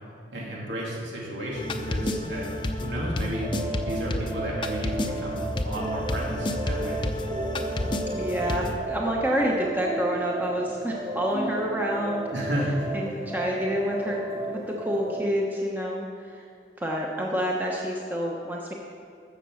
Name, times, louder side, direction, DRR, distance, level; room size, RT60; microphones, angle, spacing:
voice 1, 0.3-3.5 3.8-7.0 12.3-12.9, equal, 90° right, -4 dB, 2.8 m, -32 dB
sound 1, 1.5-8.8, left 1 dB, 25° left, 0.7 m, -30 dB
sound 2, 3.3-15.2, right 2 dB, 55° right, 3.0 m, -34 dB
voice 2, 8.2-12.2 12.9-14.2 14.5-16.4 16.8-18.7, equal, 10° right, -2 dB, 1.0 m, -28 dB
15.0 x 6.7 x 6.5 m, 2.4 s
head